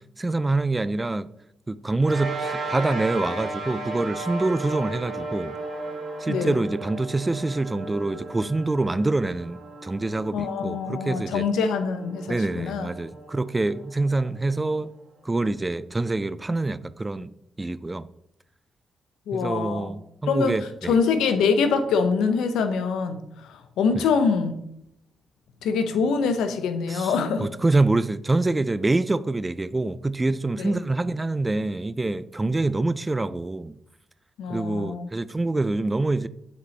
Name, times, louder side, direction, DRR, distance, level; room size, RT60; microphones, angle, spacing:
voice 1, 0.2-1.3 1.7-5.5 6.2-11.4 12.3-14.9 15.2-17.3 17.6-18.1 19.3-21.0 26.9-27.1 27.4-33.8 34.5-36.3, right 2 dB, 20° right, 0.3 m, -25 dB
sound 1, 2.0-14.7, right 2 dB, 60° right, 1.6 m, -36 dB
voice 2, 10.3-12.9 19.3-19.9 20.3-24.5 25.6-27.5 30.6-30.8 34.4-35.1, left 5 dB, 85° left, 0.6 m, -24 dB
7.4 x 4.2 x 3.2 m
cardioid pair, 65°, 0 cm